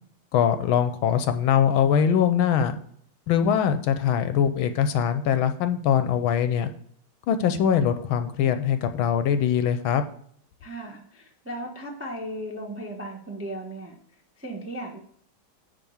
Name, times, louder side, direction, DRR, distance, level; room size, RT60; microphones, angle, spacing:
voice 1, 0.3-2.8 3.3-6.7 7.3-10.0, left 8 dB, 75° left, 10 dB, 1.4 m, -22 dB
voice 2, 10.6-14.0 14.4-15.0, right 1 dB, 10° right, 0 dB, 0.6 m, -36 dB
9.9 x 3.5 x 7.1 m, 0.62 s
omnidirectional pair, 2.4 m